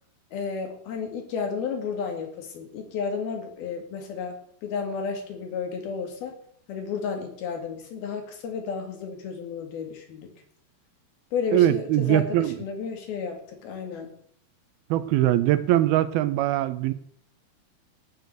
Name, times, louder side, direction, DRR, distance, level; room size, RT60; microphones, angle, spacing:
voice 1, 0.3-6.4 6.7-10.3 11.3-14.1, left 5 dB, 75° left, 4 dB, 4.1 m, -32 dB
voice 2, 11.5-12.5 14.9-16.9, right 13 dB, 80° right, 14 dB, 2.6 m, -22 dB
17.0 x 6.6 x 6.7 m, 0.63 s
omnidirectional pair, 4.5 m